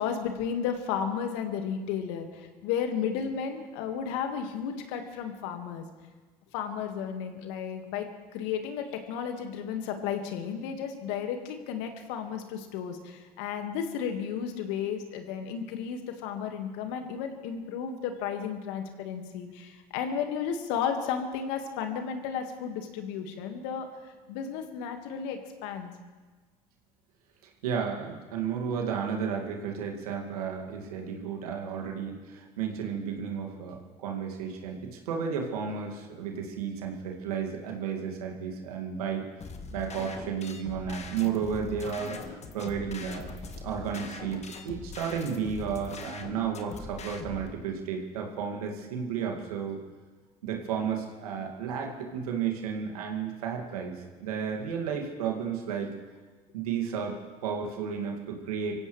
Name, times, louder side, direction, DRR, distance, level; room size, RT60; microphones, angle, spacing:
voice 1, 0.0-5.8 6.5-8.1 8.3-25.9, left 7 dB, 70° left, 5 dB, 1.9 m, -33 dB
voice 2, 27.6-39.3 39.7-43.4 43.6-49.8 50.4-55.9 56.5-57.2 57.4-58.7, right 7 dB, 85° right, 1 dB, 2.3 m, -33 dB
sound 1, 39.4-47.5, left 4 dB, 35° left, 1.7 m, -42 dB
25.0 x 16.0 x 3.3 m, 1.3 s
hypercardioid pair, 70°, 19 cm